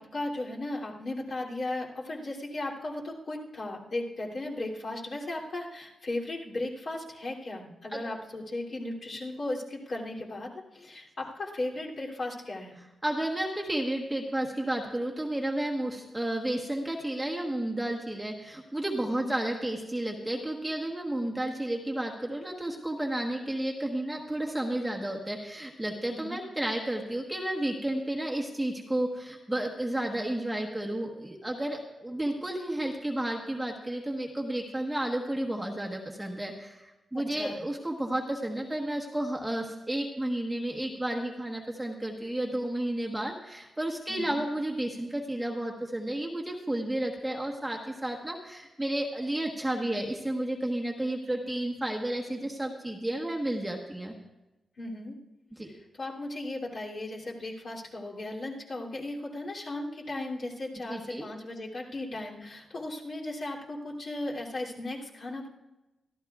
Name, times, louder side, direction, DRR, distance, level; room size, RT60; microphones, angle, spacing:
voice 1, 0.0-12.8 19.1-19.4 26.1-26.4 37.1-37.6 44.1-44.4 54.8-55.1 55.7-65.5, left 2 dB, 45° left, -4 dB, 2.9 m, -36 dB
voice 2, 13.0-54.1 55.5-55.7 60.9-61.3, right 1 dB, 5° right, -1 dB, 1.2 m, -32 dB
24.0 x 14.5 x 2.4 m, 1.0 s
wide cardioid pair, 160°, 0 cm